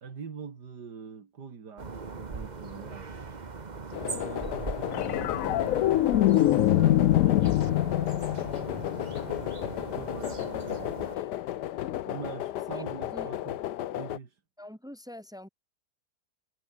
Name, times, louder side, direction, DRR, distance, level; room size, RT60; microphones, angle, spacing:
voice 1, 0.0-3.1 3.9-5.9 6.2-8.9 9.8-11.0 12.0-13.6 13.9-14.4, right 6 dB, 80° right, 2.8 m, -43 dB
sound 1, 1.8-11.2, right 4 dB, 30° right, 1.3 m, -40 dB
sound 2, 3.9-14.2, left 13 dB, 85° left, 1.4 m, -34 dB
sound 3, 4.9-9.4 11.8-12.0, left 14 dB, 70° left, 0.9 m, -24 dB
voice 2, 12.7-13.3 14.6-15.5, left 1 dB, ahead, 4.9 m, -45 dB
omnidirectional pair, 1.7 m